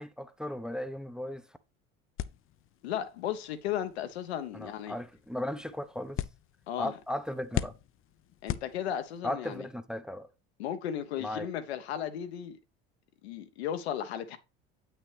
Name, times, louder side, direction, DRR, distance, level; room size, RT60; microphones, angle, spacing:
voice 1, 0.0-1.5 4.5-6.2 6.8-7.7 9.2-10.3 11.2-11.5, left 1 dB, ahead, 0.7 m, -36 dB
sound 1, 2.2-9.3, left 12 dB, 40° left, 0.6 m, -41 dB
voice 2, 2.8-5.0 6.7-6.9 8.4-9.7 10.6-12.6 13.2-14.4, left 10 dB, 80° left, 1.0 m, -35 dB
8.2 x 6.1 x 3.3 m
hypercardioid pair, 70°, 32 cm